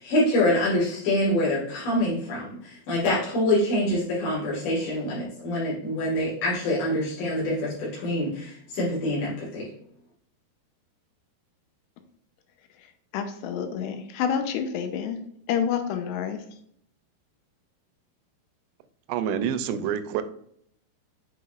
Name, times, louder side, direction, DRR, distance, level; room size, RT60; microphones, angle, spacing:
voice 1, 0.0-9.7, left 1 dB, 55° left, -7 dB, 2.9 m, -25 dB
voice 2, 13.1-15.2 15.5-16.4, left 7 dB, 85° left, 7 dB, 2.9 m, -28 dB
voice 3, 19.1-20.2, right 8 dB, 80° right, 11 dB, 2.4 m, -27 dB
7.9 x 5.6 x 2.5 m, 0.67 s
omnidirectional pair, 4.8 m